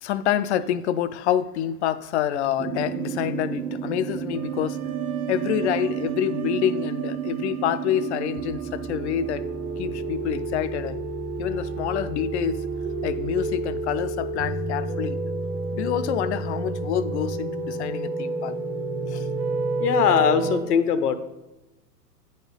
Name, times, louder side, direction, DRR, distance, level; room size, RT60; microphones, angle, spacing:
voice 1, 0.0-4.8 5.3-9.4 9.8-11.0 11.4-12.6 13.0-15.2 15.7-18.6 19.1-19.3, left 10 dB, 45° left, 14 dB, 0.4 m, -27 dB
sound 1, 2.6-20.6, right 4 dB, 15° right, 0.7 m, -30 dB
sound 2, 4.3-10.2, right 8 dB, 60° right, 0.6 m, -42 dB
voice 2, 19.8-21.2, left 7 dB, 70° left, 11 dB, 0.8 m, -20 dB
8.4 x 4.2 x 5.3 m, 1.0 s
figure-of-eight pair, 100°, 48 cm